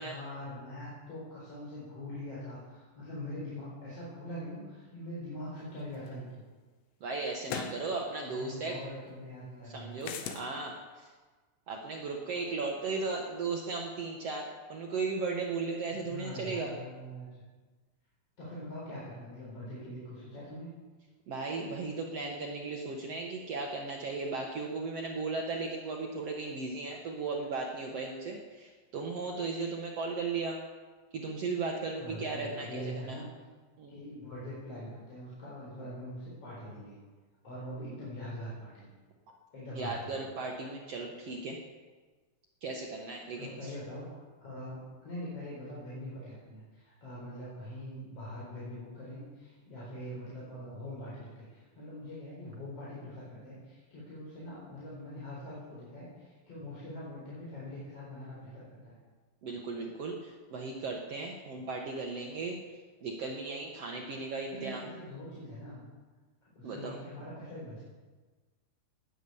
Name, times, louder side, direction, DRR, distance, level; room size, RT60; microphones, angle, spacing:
voice 1, 0.0-6.4 8.3-10.1 15.9-17.3 18.4-20.7 32.0-33.3 33.9-37.0 37.4-38.9 39.5-40.2 43.4-59.0 64.5-65.9 66.5-67.8, left 1 dB, 35° left, -7 dB, 5.2 m, -43 dB
sound 1, 6.1-6.2 7.5-7.8 10.0-10.5, left 7 dB, 85° left, 3.4 m, -37 dB
voice 2, 7.0-8.8 9.6-11.1 11.7-16.7 21.3-30.6 31.1-33.2 33.8-33.9 39.7-41.6 42.6-43.7 59.4-62.6 63.0-64.9 66.6-66.9, right 3 dB, 75° right, 0 dB, 1.4 m, -36 dB
19.0 x 9.4 x 7.0 m, 1.4 s
omnidirectional pair, 5.0 m